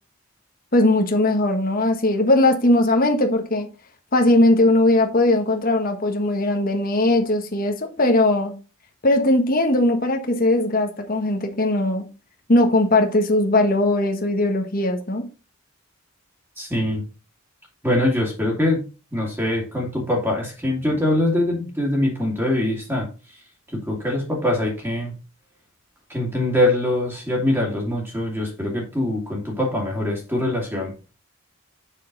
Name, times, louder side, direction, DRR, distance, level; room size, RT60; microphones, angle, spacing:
voice 1, 0.7-3.7 4.1-8.6 9.0-12.1 12.5-15.3, left 1 dB, 40° left, 1.3 m, -19 dB
voice 2, 16.6-17.0 17.8-18.8 19.1-23.1 23.7-25.1 26.1-30.9, left 1 dB, 10° right, 2.4 m, -23 dB
7.4 x 6.5 x 4.0 m
head